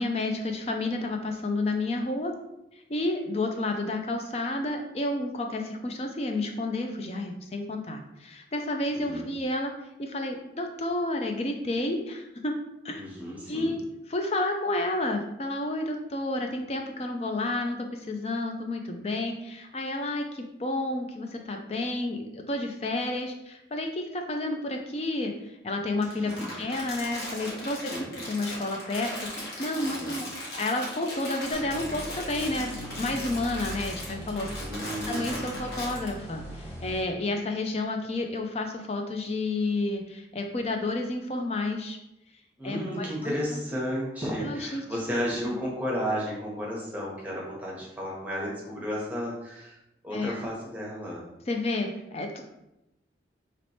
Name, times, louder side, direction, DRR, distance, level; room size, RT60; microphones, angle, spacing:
voice 1, 0.0-2.3 2.9-9.7 10.0-12.5 12.8-13.0 13.5-13.8 14.1-34.5 35.1-42.0 42.6-43.6 44.4-44.8 45.1-45.6 50.1-50.4 51.5-52.4, left 2 dB, 35° left, 4 dB, 0.4 m, -31 dB
voice 2, 8.9-9.2 12.9-13.7 26.2-26.5 27.9-28.1 29.8-30.2 34.6-35.5 42.6-49.8 50.0-51.2, equal, 10° right, -4 dB, 0.9 m, -33 dB
Crumpling crinkling, 26.0-36.1, left 1 dB, 60° left, 1.2 m, -38 dB
sound 1, 31.5-37.0, equal, 15° left, 1.1 m, -40 dB
3.1 x 3.0 x 4.2 m, 0.89 s
head